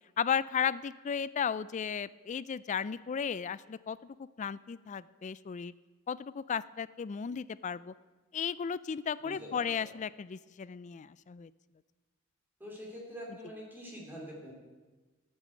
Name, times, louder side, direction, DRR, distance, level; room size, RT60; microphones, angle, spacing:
voice 1, 0.2-5.7 6.1-7.9 8.3-11.5, left 7 dB, 35° left, 17 dB, 0.3 m, -35 dB
voice 2, 9.2-9.9 12.6-14.5, equal, 10° right, -2 dB, 2.9 m, -45 dB
13.0 x 9.0 x 7.7 m, 1.3 s
head